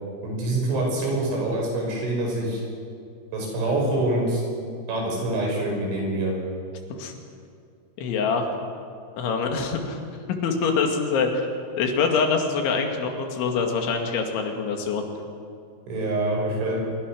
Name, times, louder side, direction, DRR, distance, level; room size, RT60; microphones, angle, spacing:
voice 1, 0.2-2.6 3.3-4.4 4.9-6.3 15.9-16.8, right 2 dB, 90° right, -1 dB, 8.5 m, -25 dB
voice 2, 8.0-8.5 9.2-10.0 10.4-11.5 11.8-15.0, left 5 dB, 80° left, 3 dB, 4.6 m, -24 dB
25.0 x 23.0 x 6.4 m, 2.4 s
omnidirectional pair, 5.3 m